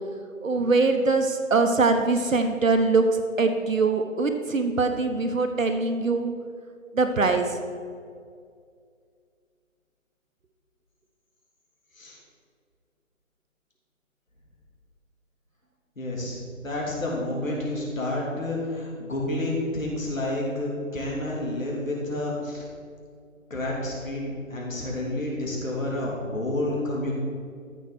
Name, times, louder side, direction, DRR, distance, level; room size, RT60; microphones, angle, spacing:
voice 1, 0.4-6.3 6.9-7.6, right 3 dB, 70° right, 6 dB, 1.0 m, -23 dB
voice 2, 16.0-16.4 16.6-22.6 23.5-27.1, left 1 dB, 70° left, -4 dB, 2.8 m, -29 dB
13.5 x 4.6 x 6.1 m, 2.2 s
figure-of-eight pair, 170°, 41 cm